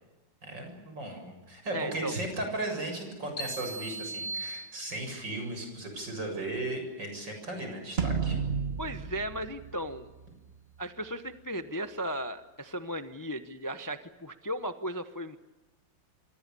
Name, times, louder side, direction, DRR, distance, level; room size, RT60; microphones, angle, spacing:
voice 1, 0.4-8.4, right 2 dB, 70° right, 4 dB, 8.0 m, -36 dB
voice 2, 1.7-2.2 8.8-10.1 10.8-15.4, equal, 15° left, 9 dB, 0.7 m, -36 dB
sound 1, 3.4-5.3, right 2 dB, 80° left, 3.1 m, -39 dB
sound 2, 8.0-10.5, right 5 dB, 35° right, 1.5 m, -32 dB
28.0 x 23.5 x 6.9 m, 1.1 s
omnidirectional pair, 2.1 m